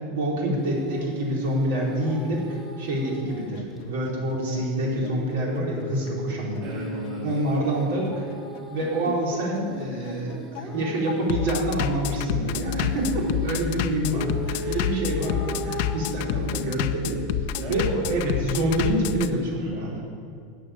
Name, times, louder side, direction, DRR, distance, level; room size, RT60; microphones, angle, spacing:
voice 1, 0.1-6.7 7.2-8.3 8.7-17.2 17.7-20.0, right 1 dB, 70° right, -3 dB, 4.0 m, -27 dB
sound 1, 0.6-3.5 3.8-3.9 4.3-11.7 12.5-16.7 17.5-17.8, equal, 10° right, 2.0 m, -37 dB
Bass drum, 3.3-19.3, left 10 dB, 50° left, 0.6 m, -29 dB
voice 2, 6.6-7.9 14.6-14.8 17.6-18.0 19.6-20.0, right 1 dB, 45° right, -6 dB, 2.9 m, -37 dB
13.0 x 6.4 x 9.2 m, 2.2 s
supercardioid pair, 170°, 0 cm